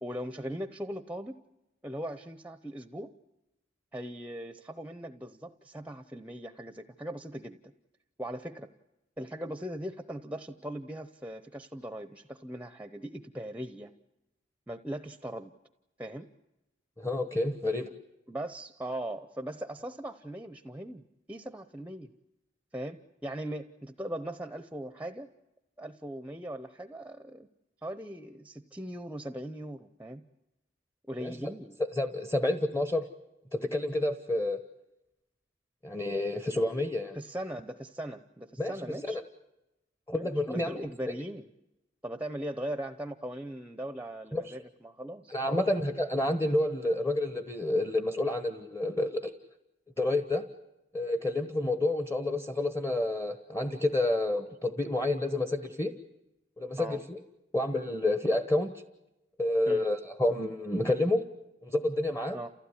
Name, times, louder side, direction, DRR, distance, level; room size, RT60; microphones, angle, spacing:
voice 1, 0.0-1.4 1.8-3.1 3.9-7.6 8.2-8.7 9.2-13.9 14.7-15.5 16.0-16.3 18.3-22.1 22.7-25.3 25.8-27.5 27.8-30.2 31.1-31.8 37.1-39.2 40.1-41.5 42.0-45.7 56.8-57.0 59.7-59.9 62.3-62.5, right 1 dB, 10° right, 10 dB, 0.8 m, -39 dB
voice 2, 17.0-17.9 31.2-31.4 31.9-33.1 33.5-34.6 35.8-37.2 38.6-39.2 40.1-40.8 41.1-41.2 44.3-44.6 45.3-49.3 50.0-50.4 50.9-55.9 56.6-57.2 57.5-58.7 59.4-61.2 61.6-62.4, left 1 dB, 15° left, 9 dB, 1.2 m, -29 dB
29.5 x 16.0 x 9.9 m, 0.94 s
head